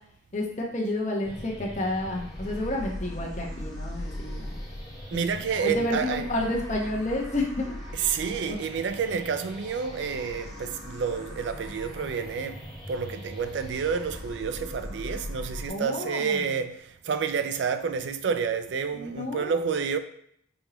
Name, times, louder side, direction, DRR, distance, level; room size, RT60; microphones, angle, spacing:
voice 1, 0.3-4.6 5.1-5.2 5.6-7.7 15.7-16.5 18.9-19.6, left 1 dB, 40° left, 1.0 m, -30 dB
sound 1, 1.2-15.7, left 1 dB, ahead, 1.3 m, -39 dB
voice 2, 5.1-6.3 7.9-20.0, right 6 dB, 80° right, 0.4 m, -29 dB
5.3 x 3.0 x 3.0 m
head